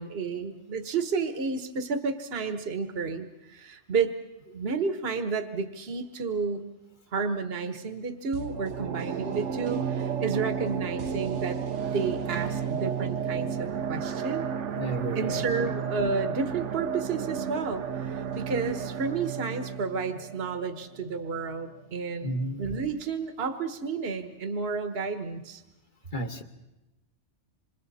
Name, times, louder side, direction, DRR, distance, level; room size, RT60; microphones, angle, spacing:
voice 1, 0.0-4.2 4.5-6.6 7.1-11.6 11.9-14.5 15.1-25.6, right 5 dB, 55° right, 8 dB, 1.5 m, -31 dB
sound 1, 8.3-21.4 21.7-21.8, right 7 dB, 80° right, 1.3 m, -32 dB
voice 2, 14.8-15.7 22.2-22.6 26.1-26.4, equal, 40° left, 4 dB, 1.8 m, -33 dB
27.0 x 27.0 x 4.2 m, 0.99 s
omnidirectional pair, 1.2 m